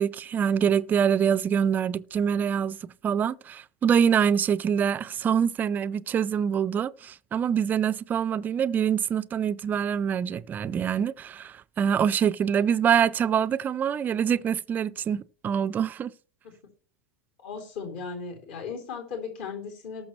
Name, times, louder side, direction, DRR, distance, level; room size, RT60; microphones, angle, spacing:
voice 1, 0.0-16.1, right 8 dB, 25° right, 0.5 m, -25 dB
voice 2, 17.4-20.1, left 5 dB, 55° left, 3.3 m, -36 dB
19.0 x 6.7 x 3.1 m
figure-of-eight pair, 85°, 7 cm